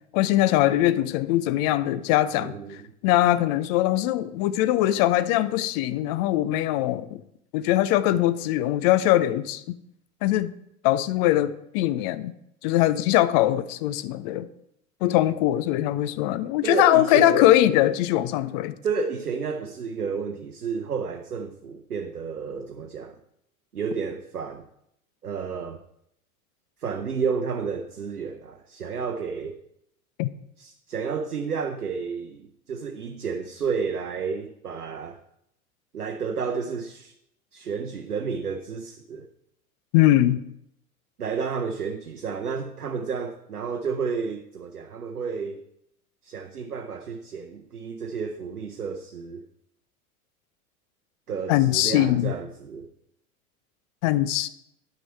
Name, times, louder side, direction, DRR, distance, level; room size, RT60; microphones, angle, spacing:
voice 1, 0.1-2.8 3.0-7.2 7.5-9.8 10.2-10.5 10.8-12.3 12.6-14.5 15.0-18.8 30.2-30.3 39.9-40.4 51.5-52.3 54.0-54.5, left 14 dB, 30° left, 0.4 m, -21 dB
voice 2, 2.4-2.8 16.6-17.4 18.8-23.1 23.7-24.6 25.2-25.8 26.8-29.6 30.6-35.2 35.9-37.1 37.5-39.3 41.2-45.6 46.2-49.4 51.3-52.9, right 5 dB, 80° right, 0.8 m, -31 dB
10.0 x 6.0 x 4.5 m
figure-of-eight pair, 85°, 44 cm